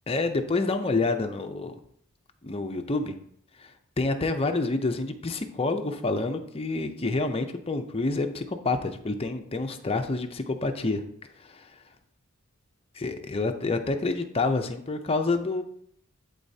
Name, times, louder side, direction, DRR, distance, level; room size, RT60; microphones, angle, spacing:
voice 1, 0.1-1.7 2.4-3.1 3.6-3.7 4.0-11.0 11.4-11.7 12.9-15.6, left 3 dB, 25° left, 6 dB, 0.6 m, -28 dB
11.5 x 3.9 x 2.8 m, 0.66 s
head